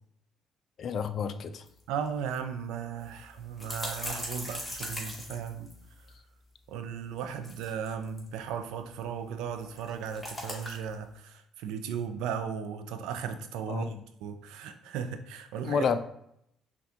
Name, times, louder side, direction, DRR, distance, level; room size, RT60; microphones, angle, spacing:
voice 1, 0.8-1.6 13.7-14.0 15.6-16.0, left 6 dB, 55° left, 0.3 m, -30 dB
sound 1, 1.7-1.8 2.1-2.2 3.0-6.1 7.2-8.3 9.6-10.9, left 1 dB, 10° left, 1.3 m, -39 dB
voice 2, 1.9-5.7 6.7-13.9 14.2-15.9, right 7 dB, 85° right, 0.4 m, -36 dB
5.9 x 2.3 x 2.7 m
cardioid pair, 90°, 0 cm